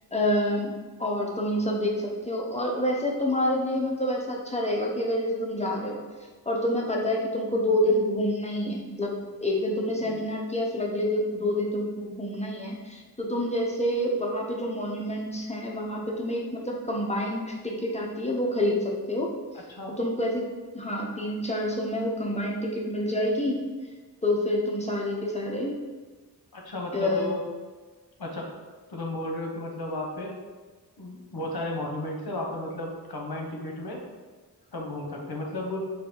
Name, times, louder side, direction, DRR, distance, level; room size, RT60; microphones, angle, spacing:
voice 1, 0.1-0.7 1.0-6.0 6.5-9.1 9.4-19.3 20.0-20.4 20.7-23.6 24.2-25.8 26.9-27.3, left 1 dB, 15° left, -1 dB, 0.8 m, -27 dB
voice 2, 26.5-27.4 28.2-28.5 28.9-30.4 31.0-34.0 34.7-35.9, left 1 dB, 65° left, 0 dB, 1.0 m, -34 dB
3.9 x 2.8 x 4.6 m, 1.4 s
wide cardioid pair, 55°, 40 cm